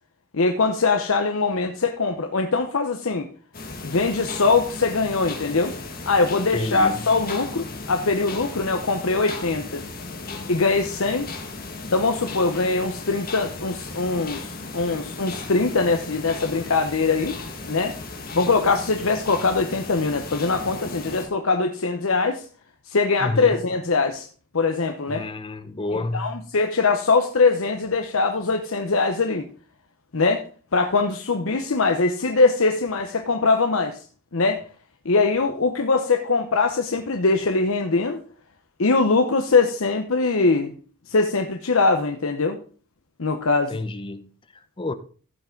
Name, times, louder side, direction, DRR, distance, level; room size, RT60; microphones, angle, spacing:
voice 1, 0.3-3.3 3.8-5.8 6.1-9.8 10.5-11.3 11.9-17.4 17.7-18.0 18.3-22.5 22.9-24.3 24.5-25.2 26.1-29.5 30.1-30.5 30.7-34.0 34.3-34.6 35.0-38.2 38.8-40.8 41.1-42.6 43.2-43.8, left 3 dB, 60° left, 0.8 m, -22 dB
sound 1, 3.5-21.3, left 3 dB, 40° left, 1.7 m, -36 dB
voice 2, 6.5-7.1 23.2-23.6 25.1-26.4 43.7-44.9, left 2 dB, 25° left, 0.6 m, -30 dB
15.0 x 5.8 x 3.8 m
head